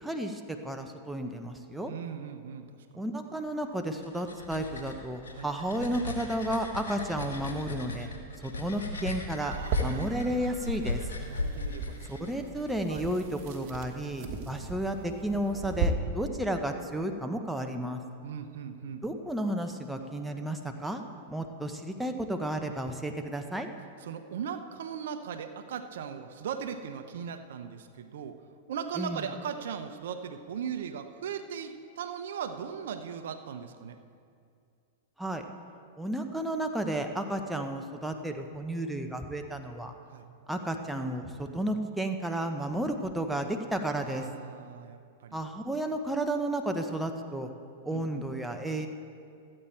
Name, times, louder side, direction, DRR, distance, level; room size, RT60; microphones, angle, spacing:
voice 1, 0.0-1.9 2.9-8.1 8.4-9.5 9.8-11.0 12.1-18.0 19.0-23.7 29.0-29.2 35.2-35.4 36.0-39.9 40.5-44.3 45.3-47.5 47.8-48.9, right 1 dB, 5° right, 5 dB, 0.9 m, -32 dB
voice 2, 1.9-3.0 5.4-5.5 9.4-10.6 11.2-12.3 12.9-13.1 18.2-19.0 24.0-28.4 28.7-34.0 37.5-37.7 40.1-40.3 44.1-45.4 47.9-48.2, right 7 dB, 70° right, 9 dB, 0.7 m, -39 dB
sound 1, 3.8-12.7, left 3 dB, 85° left, 1.6 m, -38 dB
sound 2, 9.4-15.9, right 5 dB, 50° right, 1.4 m, -37 dB
14.0 x 8.7 x 4.5 m, 2.3 s
hypercardioid pair, 110°, 0 cm